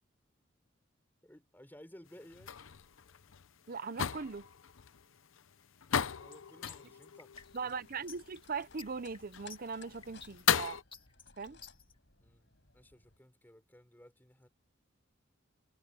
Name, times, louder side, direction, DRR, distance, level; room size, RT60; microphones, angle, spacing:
voice 1, 1.2-2.6 6.1-7.3 7.6-7.8 11.5-11.6 12.2-14.5, equal, 10° left, 4.1 m, -57 dB
sound 1, 2.1-10.8, left 8 dB, 80° left, 0.7 m, -37 dB
voice 2, 3.7-4.5 7.5-10.8 11.4-11.6, right 5 dB, 45° right, 0.7 m, -40 dB
sound 2, 6.3-11.9, left 5 dB, 25° left, 2.2 m, -53 dB
sound 3, 7.3-13.2, left 5 dB, 65° left, 6.5 m, -60 dB
head